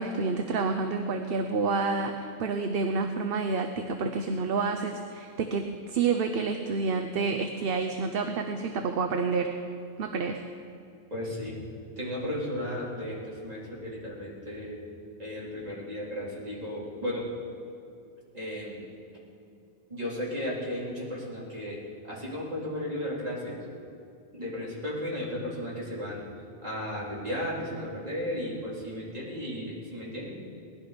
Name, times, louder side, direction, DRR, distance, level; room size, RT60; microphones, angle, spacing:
voice 1, 0.0-9.5 10.0-10.4, right 4 dB, 65° right, 5 dB, 0.9 m, -29 dB
voice 2, 11.1-11.6 12.0-14.8 15.2-17.3 18.3-18.8 19.9-21.8 22.0-23.6 24.3-26.2 26.6-30.3, left 1 dB, 40° right, -7 dB, 4.0 m, -34 dB
20.0 x 11.5 x 5.1 m, 2.5 s
omnidirectional pair, 1.1 m